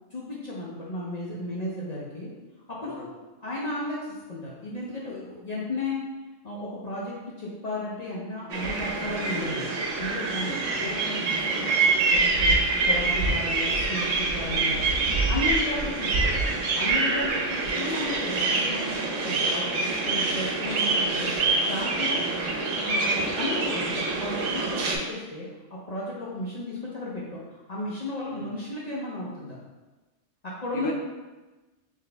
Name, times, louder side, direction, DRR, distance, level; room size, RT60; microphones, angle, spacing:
voice 1, 0.1-2.3 2.7-3.0 3.4-6.0 6.4-9.7 10.0-11.8 12.1-12.6 12.8-14.8 15.3-16.5 16.8-21.3 21.6-22.2 22.8-29.6 30.4-30.9, left 2 dB, 45° left, -6 dB, 0.5 m, -34 dB
sound 1, 8.5-25.0, right 3 dB, 80° right, 1.0 m, -25 dB
voice 2, 10.4-10.9 15.5-15.6 17.3-17.4 22.0-22.2 28.3-28.5 30.7-30.9, equal, 85° left, 0 dB, 1.0 m, -36 dB
3.9 x 2.7 x 3.3 m, 1.2 s
omnidirectional pair, 1.3 m